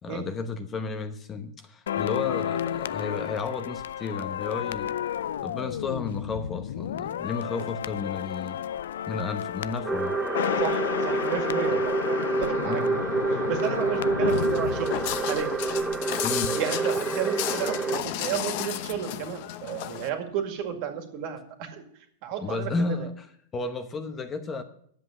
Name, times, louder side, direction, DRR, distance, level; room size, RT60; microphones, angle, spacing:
voice 1, 0.0-4.9 5.4-8.6 9.1-10.2 11.7-11.8 12.7-13.0 16.2-16.6 22.4-24.6, left 4 dB, 20° left, 8 dB, 0.9 m, -33 dB
sound 1, 1.9-16.0 16.3-16.5, left 10 dB, 85° left, 0.4 m, -32 dB
sound 2, 9.8-18.0, right 4 dB, 10° right, 0.6 m, -28 dB
voice 2, 10.6-13.0 13.3-15.0 15.3-15.5 16.6-21.8 22.2-23.1, right 9 dB, 50° right, 5 dB, 2.2 m, -32 dB
Walk footsteps, 14.3-20.1, left 12 dB, 55° left, 0.9 m, -33 dB
10.5 x 7.9 x 7.2 m, 0.65 s
supercardioid pair, 140°, 0 cm